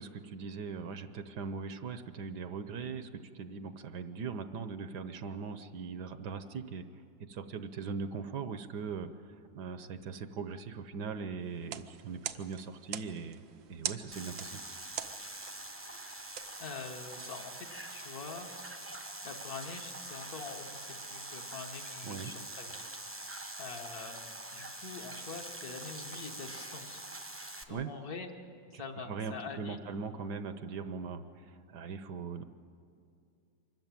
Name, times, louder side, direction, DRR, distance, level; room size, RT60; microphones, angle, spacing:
voice 1, 0.0-6.8 7.3-13.4 13.7-14.6 22.0-22.3 27.7-27.9 28.7-28.8 29.1-32.4, right 5 dB, 70° right, 10 dB, 1.3 m, -40 dB
sound 1, 11.5-17.3, right 10 dB, 90° right, 1.5 m, -44 dB
sound 2, 14.1-27.6, right 1 dB, 10° right, 0.8 m, -44 dB
voice 2, 16.6-18.5 19.2-22.9 23.6-27.0 27.7-28.3 28.7-29.8, left 4 dB, 55° left, 3 dB, 1.8 m, -45 dB
24.5 x 14.0 x 9.1 m, 2.5 s
omnidirectional pair, 2.0 m